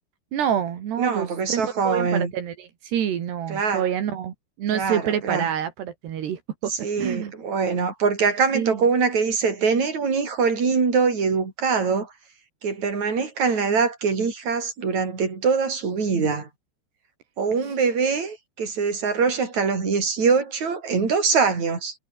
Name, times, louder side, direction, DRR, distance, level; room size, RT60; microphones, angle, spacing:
voice 1, 0.3-6.7 7.0-7.3 8.5-8.8, right 9 dB, 80° right, 4.6 m, -27 dB
voice 2, 1.0-2.3 3.5-3.9 4.7-5.5 6.7-12.1 12.6-16.5 17.4-21.9, right 5 dB, 45° right, 6.5 m, -23 dB
omnidirectional pair, 4.8 m